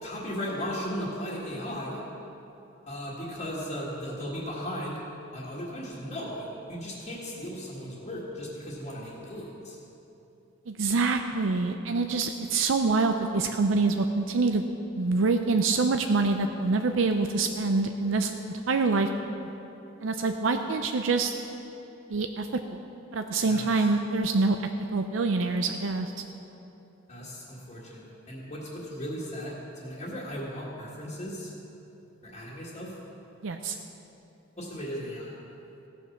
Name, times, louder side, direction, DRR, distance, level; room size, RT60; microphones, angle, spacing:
voice 1, 0.0-2.0 2.9-5.0 5.3-9.8 23.4-23.7 27.1-31.5 32.2-33.0 34.6-35.3, equal, 35° left, -8 dB, 1.8 m, -36 dB
voice 2, 10.7-14.6 15.0-18.3 18.7-19.1 20.0-21.3 22.1-22.8 23.1-24.6 24.9-26.1 33.4-33.8, right 3 dB, 85° right, 6 dB, 0.5 m, -25 dB
16.0 x 7.2 x 5.9 m, 2.9 s
head